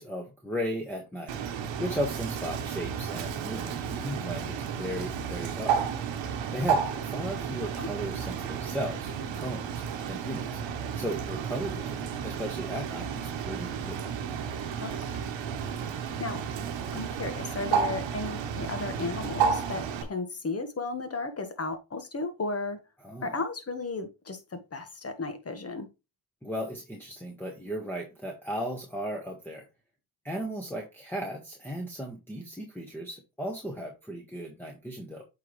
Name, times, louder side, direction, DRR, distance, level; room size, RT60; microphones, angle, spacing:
voice 1, 0.0-1.4 1.8-5.8 6.5-9.8 10.1-10.6 11.0-14.1 23.0-23.4 26.4-29.7 30.2-35.2, equal, 5° left, 1.5 m, -36 dB
Bird, 1.3-20.0, right 7 dB, 85° right, 1.2 m, -32 dB
voice 2, 14.8-15.2 15.9-16.4 16.9-22.8 23.2-25.9, left 3 dB, 35° left, 1.6 m, -34 dB
8.2 x 4.1 x 3.2 m
cardioid pair, 75°, 44 cm